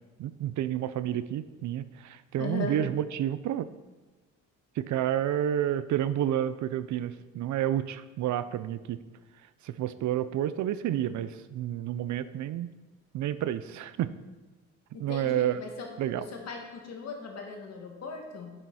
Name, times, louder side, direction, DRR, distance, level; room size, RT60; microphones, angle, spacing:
voice 1, 0.2-3.7 4.8-9.0 9.6-12.7 13.1-14.1 15.0-15.6 16.0-16.3, right 11 dB, 70° right, 14 dB, 0.6 m, -30 dB
voice 2, 2.3-2.8 14.9-15.9 16.1-18.5, left 4 dB, 60° left, 1 dB, 2.1 m, -38 dB
10.0 x 7.7 x 4.2 m, 1.2 s
cardioid pair, 90°, 30 cm